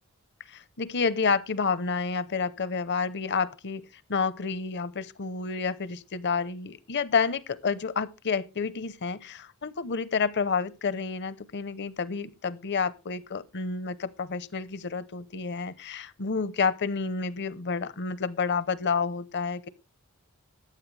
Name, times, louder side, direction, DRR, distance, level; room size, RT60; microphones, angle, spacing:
voice 1, 0.5-19.7, left 5 dB, 55° left, 0.7 m, -29 dB
14.0 x 9.7 x 3.3 m
head